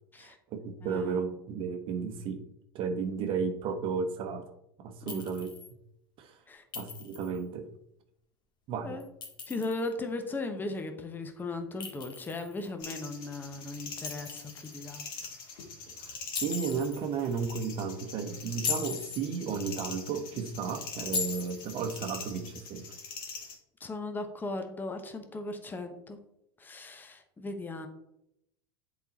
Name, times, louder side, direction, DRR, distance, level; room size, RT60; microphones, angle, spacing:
voice 1, 0.2-2.4 2.7-4.5 4.8-5.5 6.2-6.4 6.7-7.7 8.7-9.0 15.9-16.2 16.4-22.9, right 6 dB, 45° right, 6 dB, 0.9 m, -33 dB
voice 2, 0.8-1.3 5.0-5.2 6.5-6.6 8.8-9.1 9.5-15.1 23.8-26.2 26.6-27.9, left 2 dB, 15° left, 6 dB, 1.0 m, -37 dB
Chink clink, 5.1-5.7 6.7-7.4 9.0-9.9 11.8-12.7 14.0-14.8 16.3-17.0 18.5-19.3 21.1-21.8, left 5 dB, 35° left, 1.6 m, -37 dB
sound 1, 12.8-23.5, left 5 dB, 70° left, 2.0 m, -43 dB
7.9 x 4.2 x 4.1 m, 0.80 s
hypercardioid pair, 95°, 12 cm